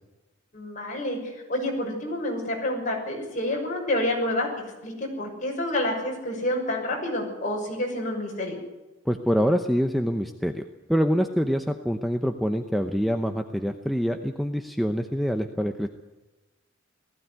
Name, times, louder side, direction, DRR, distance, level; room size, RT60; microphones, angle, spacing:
voice 1, 0.5-4.5 4.8-8.6, left 1 dB, 40° left, 0 dB, 6.3 m, -28 dB
voice 2, 9.1-10.6 10.9-15.9, equal, ahead, 5 dB, 0.8 m, -25 dB
18.5 x 15.5 x 9.5 m, 1.1 s
head